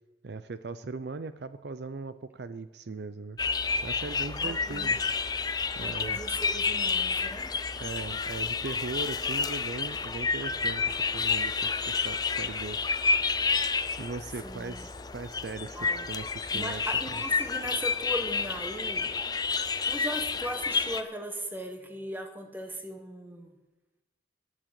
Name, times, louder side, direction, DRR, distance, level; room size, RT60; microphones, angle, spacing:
voice 1, 0.2-3.4 3.8-5.0 5.8-6.2 7.7-13.0 14.0-16.8 17.1-17.2, right 3 dB, 60° right, 13 dB, 0.5 m, -39 dB
sound 1, 3.4-21.0, left 5 dB, 20° left, 0.5 m, -30 dB
voice 2, 4.4-5.0 5.8-7.6 14.4-14.9 15.7-16.1 16.5-19.2 19.9-23.5, equal, 10° right, 5 dB, 1.3 m, -38 dB
11.5 x 11.0 x 7.6 m, 1.1 s
head